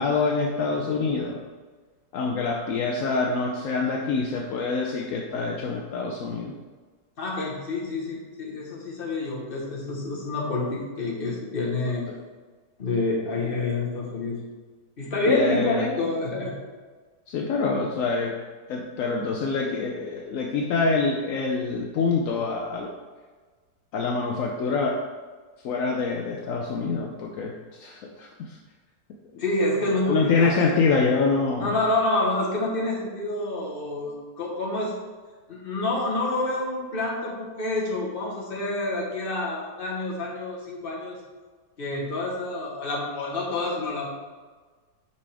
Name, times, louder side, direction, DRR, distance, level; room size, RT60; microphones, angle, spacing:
voice 1, 0.0-1.4 2.1-6.5 12.1-12.2 15.3-15.9 17.3-18.4 18.7-22.9 23.9-25.0 25.6-27.5 27.8-28.6 30.1-31.8, left 4 dB, 70° left, 0 dB, 0.8 m, -25 dB
voice 2, 7.2-12.0 12.8-14.4 15.0-16.6 29.4-30.7 31.6-35.0 35.5-41.2 41.8-44.1, left 2 dB, 35° left, -3 dB, 1.2 m, -28 dB
5.5 x 5.2 x 3.4 m, 1.4 s
omnidirectional pair, 1.9 m